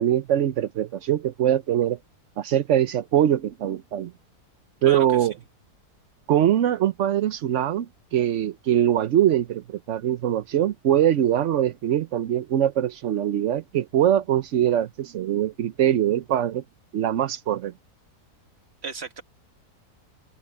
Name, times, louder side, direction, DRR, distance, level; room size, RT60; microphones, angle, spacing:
voice 1, 0.0-2.0 2.4-4.1 4.8-5.3 6.3-16.6 16.9-17.7, right 11 dB, 60° right, 0.9 m, -22 dB
voice 2, 4.8-5.3 18.8-19.2, right 4 dB, 40° right, 1.9 m, -34 dB
open air
omnidirectional pair, 1.8 m